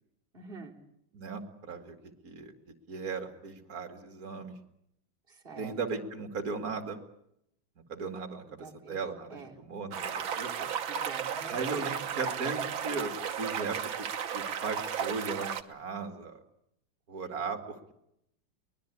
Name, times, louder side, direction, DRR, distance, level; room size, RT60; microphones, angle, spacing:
voice 1, 0.3-0.7 5.3-6.1 8.6-9.0 9.3-9.6 10.9-11.6, right 4 dB, 25° right, -1 dB, 3.4 m, -47 dB
voice 2, 1.1-2.5 2.9-4.5 5.6-7.0 7.9-10.7 11.5-13.1 13.4-13.8 14.3-16.4 17.1-17.9, right 4 dB, 45° right, 6 dB, 2.7 m, -37 dB
sound 1, 9.9-15.6, right 8 dB, 75° right, 2.0 m, -34 dB
23.5 x 20.0 x 8.4 m, 0.79 s
omnidirectional pair, 2.2 m